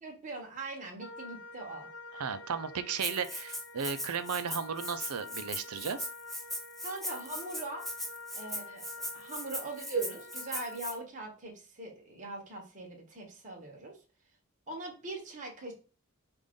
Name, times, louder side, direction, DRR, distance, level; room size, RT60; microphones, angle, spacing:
voice 1, 0.0-1.9 6.8-7.9 8.3-14.0 14.7-15.7, right 3 dB, 35° right, -1 dB, 1.2 m, -40 dB
Wind instrument woodwind instrument, 1.0-10.9, left 3 dB, 55° left, 0.7 m, -48 dB
voice 2, 2.1-6.1, right 6 dB, 85° right, 11 dB, 0.5 m, -35 dB
Rattle (instrument), 3.0-10.9, equal, ahead, 0.5 m, -39 dB
5.2 x 2.6 x 3.6 m, 0.36 s
head